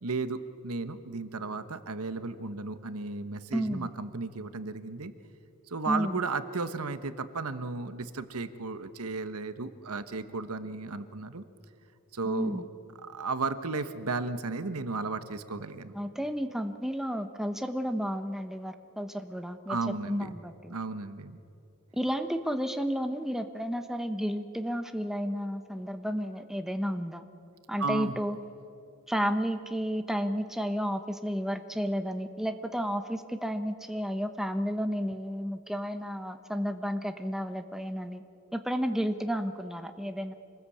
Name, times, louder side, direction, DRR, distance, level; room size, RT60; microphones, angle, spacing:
voice 1, 0.0-5.1 5.7-11.4 12.1-12.6 13.1-15.9 19.7-20.4 20.7-21.4 27.8-28.2, right 3 dB, 85° right, 11 dB, 1.2 m, -34 dB
voice 2, 3.5-3.9 5.9-6.2 12.2-12.6 15.9-20.8 21.9-27.2 27.7-28.4 29.1-38.2 38.5-40.3, equal, ahead, 8 dB, 1.0 m, -32 dB
26.5 x 20.0 x 8.5 m, 2.6 s
head